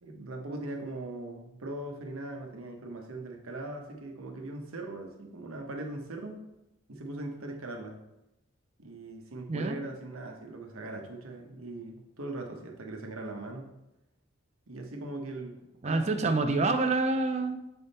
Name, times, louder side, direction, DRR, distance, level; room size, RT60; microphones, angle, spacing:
voice 1, 0.0-6.4 6.9-8.0 8.8-13.7 14.7-16.4, right 2 dB, 90° right, 2 dB, 1.0 m, -40 dB
voice 2, 15.8-17.6, right 3 dB, 30° right, 6 dB, 0.5 m, -27 dB
6.8 x 3.6 x 4.2 m, 0.92 s
head